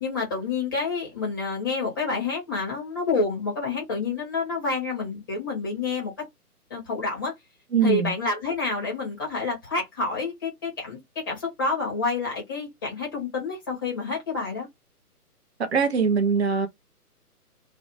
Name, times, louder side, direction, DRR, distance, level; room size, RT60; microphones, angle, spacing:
voice 1, 0.0-6.1 6.7-7.3 7.8-14.7, left 4 dB, 15° left, 0.6 m, -28 dB
voice 2, 7.7-8.1 15.6-16.7, right 5 dB, 45° right, 0.6 m, -22 dB
2.4 x 2.0 x 3.0 m
figure-of-eight pair, 135°, 47 cm